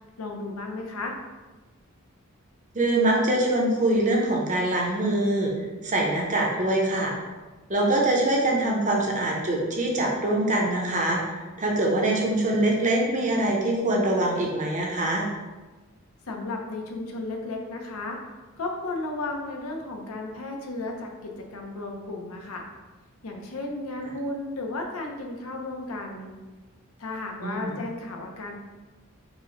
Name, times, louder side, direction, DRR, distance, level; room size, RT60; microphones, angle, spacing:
voice 1, 0.2-1.2 16.3-18.2 18.6-22.7 23.2-26.3 27.0-28.6, left 2 dB, 90° left, 2 dB, 0.7 m, -34 dB
voice 2, 2.7-5.5 5.8-7.1 7.7-11.2 11.6-15.3 27.4-27.8, right 1 dB, 35° right, -1 dB, 0.7 m, -24 dB
4.7 x 2.2 x 3.9 m, 1.2 s
head